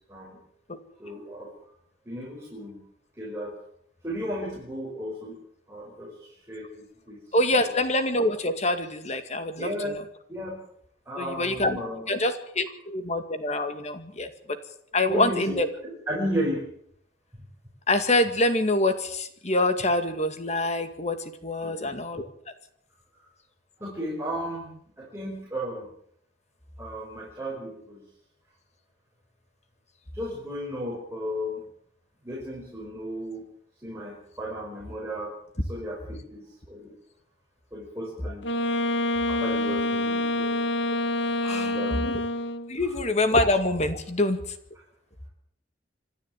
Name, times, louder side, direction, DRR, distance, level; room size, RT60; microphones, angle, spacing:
voice 1, 1.0-1.5 2.1-2.8 3.2-3.5 4.0-5.4 5.7-7.2 7.6-7.7 9.6-10.0 10.3-10.6 11.1-12.1 15.1-16.7 21.6-21.9 23.8-24.7 25.0-25.9 26.8-28.0 30.1-31.7 32.2-33.5 33.8-35.3 35.6-36.0 36.3-36.9 37.7-38.5 39.3-40.6 41.4-42.1 42.8-42.9, equal, 15° right, -4 dB, 5.9 m, -34 dB
voice 2, 7.3-10.0 11.2-11.8 12.1-14.6 14.9-15.7 17.9-22.3 41.4-41.7 42.0-42.2 42.7-44.4, left 2 dB, 40° left, 9 dB, 2.1 m, -25 dB
Wind instrument woodwind instrument, 38.4-42.8, left 1 dB, 80° left, 1.4 m, -27 dB
27.0 x 12.0 x 9.1 m, 0.69 s
head